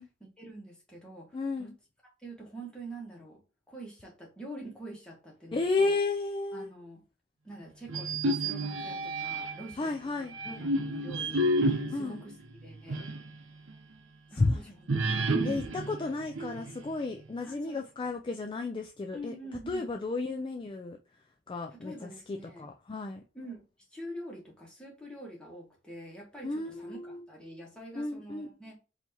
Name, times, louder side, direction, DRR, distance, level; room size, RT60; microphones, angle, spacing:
voice 1, 0.2-1.7 2.2-3.4 3.7-6.0 6.5-7.0 7.4-12.4 12.6-13.0 14.3-14.9 15.3-15.7 17.4-17.8 19.1-19.9 21.7-22.7 23.3-28.8, right 1 dB, 5° left, 1.5 m, -45 dB
voice 2, 1.3-1.8 5.5-6.7 9.8-10.6 11.9-12.2 14.3-14.6 15.4-19.3 19.7-21.0 21.5-23.2 26.4-27.3 28.0-28.5, left 3 dB, 25° left, 0.3 m, -33 dB
sound 1, 7.9-9.7 10.3-13.3 13.7-13.8 14.9-16.9, right 1 dB, 90° right, 0.8 m, -31 dB
4.4 x 2.9 x 2.8 m
head